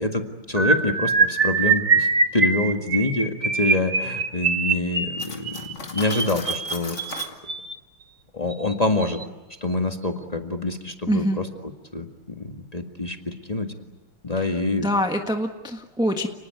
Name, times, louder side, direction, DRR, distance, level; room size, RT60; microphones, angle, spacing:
voice 1, 0.0-7.2 8.3-9.2 9.6-11.5 11.9-13.7 14.2-14.9, left 2 dB, 20° left, 5 dB, 1.7 m, -26 dB
sound 1, 0.6-7.7 8.5-8.7 9.0-9.2 9.5-9.7, right 4 dB, 35° right, 1.6 m, -23 dB
Cutlery silverware, 5.2-7.4, left 3 dB, 35° left, 2.5 m, -37 dB
voice 2, 11.1-11.4 14.4-14.5 14.8-16.3, equal, ahead, 4 dB, 1.2 m, -24 dB
30.0 x 19.5 x 9.5 m, 1.1 s
omnidirectional pair, 2.4 m